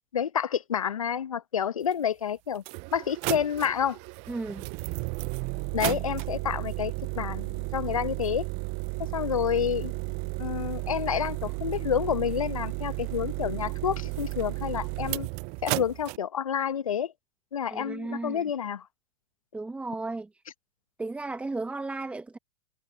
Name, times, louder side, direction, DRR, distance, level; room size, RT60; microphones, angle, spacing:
voice 1, 0.1-2.6 2.9-4.0 5.7-8.5 9.0-9.9 10.4-15.3 15.6-17.1 17.5-18.9, left 8 dB, 75° left, 1.0 m, -29 dB
sound 1, 1.9-2.0 2.5-16.2, right 31 dB, 40° right, 0.5 m, -33 dB
voice 2, 4.3-4.7 17.7-18.4 19.5-20.3 21.0-22.4, right 3 dB, 5° right, 1.4 m, -34 dB
figure-of-eight pair, 105°, 18 cm